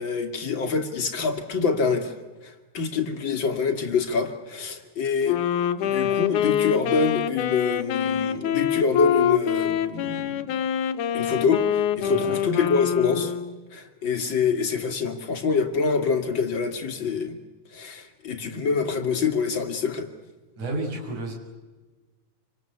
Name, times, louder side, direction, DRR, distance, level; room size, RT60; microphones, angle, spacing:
voice 1, 0.0-2.1 2.4-5.4 5.8-10.6 11.1-13.4 13.7-17.4 17.7-20.1, left 5 dB, 40° left, 6 dB, 3.0 m, -26 dB
Wind instrument woodwind instrument, 5.2-13.6, left 9 dB, 85° left, 2.6 m, -25 dB
voice 2, 20.6-21.3, right 2 dB, 80° right, 1 dB, 7.5 m, -31 dB
27.5 x 26.0 x 8.2 m, 1.2 s
omnidirectional pair, 3.4 m